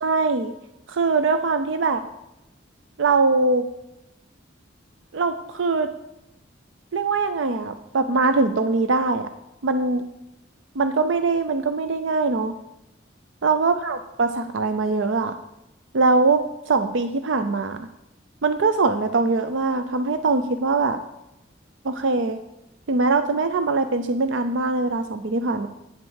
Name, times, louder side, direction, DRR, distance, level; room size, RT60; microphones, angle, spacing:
voice 1, 0.0-0.5 0.9-2.0 3.0-3.7 5.1-5.9 6.9-9.2 9.6-10.1 10.8-12.5 13.4-15.3 15.9-17.9 18.4-21.0 21.8-22.4 22.9-25.7, right 3 dB, 75° right, 9 dB, 0.6 m, -22 dB
9.4 x 7.8 x 6.4 m, 0.91 s
head